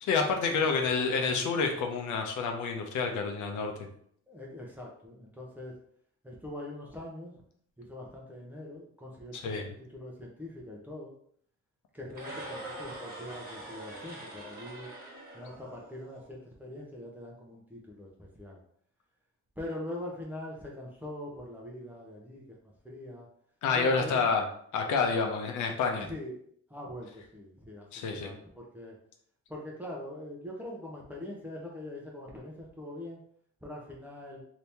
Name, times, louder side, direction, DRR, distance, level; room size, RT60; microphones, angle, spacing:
voice 1, 0.0-3.7 9.4-9.7 23.6-24.4 24.7-26.1 27.9-28.3, left 4 dB, 80° left, 3 dB, 0.7 m, -28 dB
voice 2, 4.3-5.8 6.2-7.4 7.8-11.1 11.9-14.9 15.3-18.6 19.6-23.3 23.7-24.3 26.1-26.4 26.7-29.0 29.5-33.2 33.6-34.4, left 1 dB, 5° right, -3 dB, 0.7 m, -43 dB
sound 1, 12.1-16.3, right 1 dB, 30° right, 1.5 m, -44 dB
2.9 x 2.8 x 3.4 m, 0.65 s
cardioid pair, 90°, 30 cm